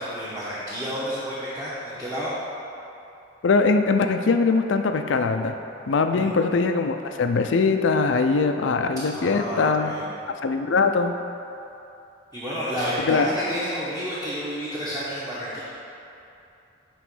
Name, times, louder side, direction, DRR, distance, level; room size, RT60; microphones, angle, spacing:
voice 1, 0.0-2.3 6.1-6.4 9.1-10.1 12.3-15.6, equal, 15° right, -10 dB, 1.1 m, -30 dB
voice 2, 3.4-5.6 5.9-9.9 10.4-11.2 13.1-13.3, left 4 dB, 75° left, 6 dB, 0.5 m, -21 dB
9.1 x 3.1 x 6.1 m, 2.8 s
head